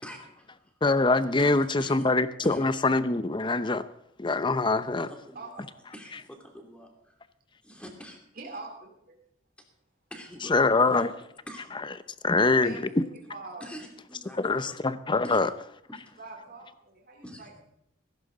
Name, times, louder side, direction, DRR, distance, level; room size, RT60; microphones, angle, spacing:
voice 1, 0.0-0.6 1.4-1.5 1.8-2.1 2.4-2.7 4.9-5.7 5.9-7.2 7.6-8.2 10.1-11.8 12.4-12.5 13.6-14.8 15.2-15.4 15.9-16.0 17.2-17.5, equal, 5° left, 2 dB, 2.8 m, -45 dB
voice 2, 0.8-3.8 4.2-5.1 10.5-11.1 12.2-12.8 14.3-15.5, left 3 dB, 25° left, 13 dB, 0.6 m, -24 dB
voice 3, 8.3-8.9 12.4-12.9 13.1-13.6 16.2-17.6, right 3 dB, 50° right, 1 dB, 3.4 m, -43 dB
16.5 x 15.0 x 3.9 m, 0.77 s
head